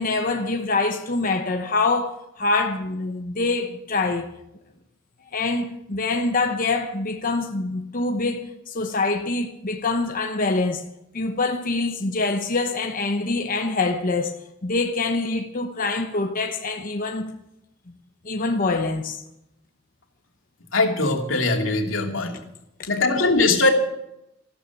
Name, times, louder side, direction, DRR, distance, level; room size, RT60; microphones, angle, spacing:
voice 1, 0.0-4.4 5.3-10.9 11.1-17.4 17.9-18.0 18.2-19.2 22.8-22.9, left 3 dB, 45° left, 1.0 m, -25 dB
voice 2, 20.7-22.3 22.9-23.7, left 3 dB, 85° left, 2.6 m, -21 dB
14.0 x 13.0 x 7.0 m
head